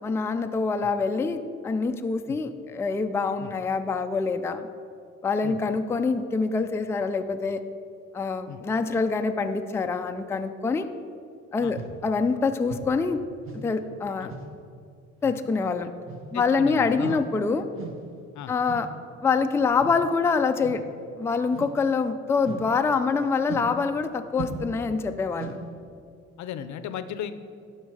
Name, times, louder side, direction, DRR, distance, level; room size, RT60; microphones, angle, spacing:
voice 1, 0.0-4.7 5.2-7.6 8.1-10.9 11.5-13.2 13.5-14.3 15.2-15.9 16.3-17.7 18.5-18.9 19.2-20.8 21.2-25.6, left 4 dB, 10° left, 7 dB, 0.3 m, -25 dB
sound 1, 11.7-12.0 12.7-13.0 13.5-13.7 14.3-14.5 15.2-15.4 16.0-16.4 17.0-17.3 17.7-18.0 18.6-19.0 19.8-20.0 20.6-20.9 21.5-21.8 22.4-22.7 23.4-23.7 24.3-24.8 25.3-25.7, right 5 dB, 45° right, 1.2 m, -38 dB
voice 2, 16.3-17.3 18.3-18.5 26.4-27.3, left 9 dB, 70° left, 11 dB, 0.6 m, -36 dB
12.0 x 4.6 x 4.7 m, 2.4 s
cardioid pair, 90°, 30 cm